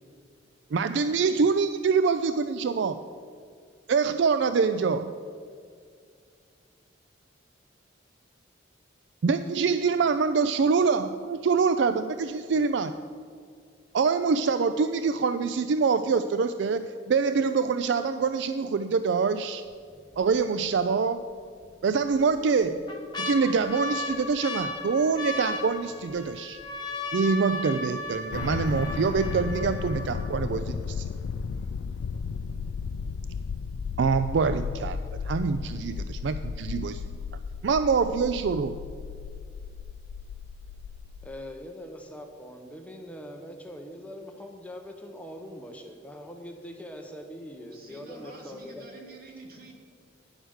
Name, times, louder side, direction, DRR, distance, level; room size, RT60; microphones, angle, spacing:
voice 1, 0.7-3.0 3.9-5.1 9.2-12.9 13.9-19.6 20.2-21.2 21.8-26.6 27.1-31.0 34.0-35.0 35.3-37.0 37.6-38.8, right 5 dB, 65° right, 11 dB, 0.4 m, -25 dB
sound 1, 19.7-20.2 20.6-20.7 21.6-22.2 22.6-30.6 31.3-31.4 31.6-32.0 32.5-32.6, left 2 dB, 20° left, 1.3 m, -36 dB
sound 2, 28.3-41.3, left 5 dB, 85° left, 0.3 m, -34 dB
voice 2, 41.2-48.8, equal, 5° left, 3 dB, 0.8 m, -42 dB
voice 3, 47.7-49.7, right 2 dB, 50° right, 1 dB, 2.0 m, -48 dB
10.5 x 7.9 x 6.3 m, 2.2 s
head